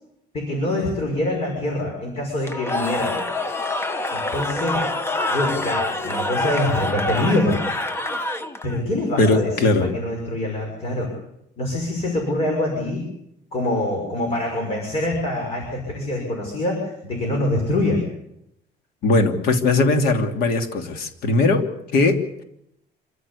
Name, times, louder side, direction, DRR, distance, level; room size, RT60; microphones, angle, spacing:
voice 1, 0.3-3.2 4.1-4.9 5.3-7.6 8.6-11.1 11.6-13.1 13.5-18.0, left 1 dB, 35° left, 2 dB, 5.9 m, -25 dB
Cheering / Crowd, 2.4-8.8, left 2 dB, 15° left, 1.0 m, -26 dB
voice 2, 9.2-9.9 19.0-21.6 21.9-22.4, left 2 dB, 60° left, 5 dB, 2.9 m, -19 dB
27.0 x 15.0 x 8.5 m, 0.82 s
cardioid pair, 165°, 18 cm